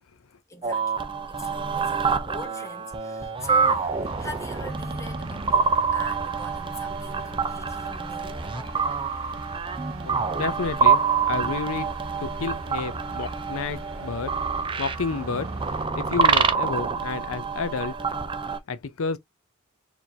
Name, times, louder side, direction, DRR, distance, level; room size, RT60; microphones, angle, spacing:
voice 1, 0.5-9.0, right 1 dB, 15° left, 0.9 m, -41 dB
sound 1, 0.6-18.6, right 5 dB, 25° right, 0.5 m, -26 dB
sound 2, 3.4-15.9, right 2 dB, 70° right, 1.0 m, -42 dB
voice 2, 10.0-11.9 12.2-14.4 14.8-15.5 16.0-18.0 18.7-19.2, left 4 dB, 80° left, 0.6 m, -30 dB
4.5 x 2.7 x 2.7 m
head